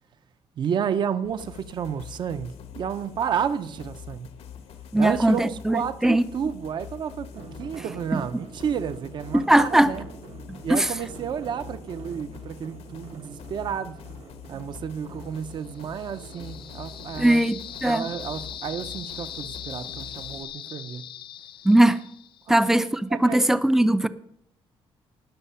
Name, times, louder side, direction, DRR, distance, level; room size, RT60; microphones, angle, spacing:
voice 1, 0.6-4.3 5.0-10.1 10.6-14.0 14.5-17.4 17.8-21.0 22.5-22.6 23.1-23.5, right 8 dB, 45° right, 0.7 m, -31 dB
sound 1, 1.2-20.4, left 8 dB, 80° left, 1.3 m, -44 dB
voice 2, 4.9-6.2 9.3-9.9 10.5-10.9 17.2-18.1 21.6-22.0 22.5-24.1, right 1 dB, 5° right, 0.5 m, -20 dB
sound 2, 7.3-20.9, right 6 dB, 70° right, 1.3 m, -47 dB
sound 3, 15.6-22.6, left 10 dB, 55° left, 0.5 m, -40 dB
18.5 x 6.6 x 5.6 m
cardioid pair, 160°, 10 cm